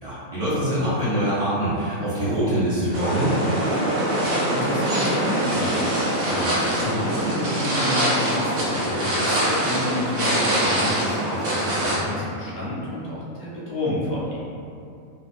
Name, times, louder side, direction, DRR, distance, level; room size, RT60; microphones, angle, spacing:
voice 1, 0.0-3.3, right 1 dB, 35° right, -12 dB, 0.6 m, -24 dB
sound 1, 2.9-12.0, right 1 dB, 75° right, 1.0 m, -23 dB
voice 2, 4.5-14.4, left 1 dB, 60° left, -7 dB, 0.8 m, -30 dB
2.5 x 2.4 x 2.3 m, 2.5 s
omnidirectional pair, 1.6 m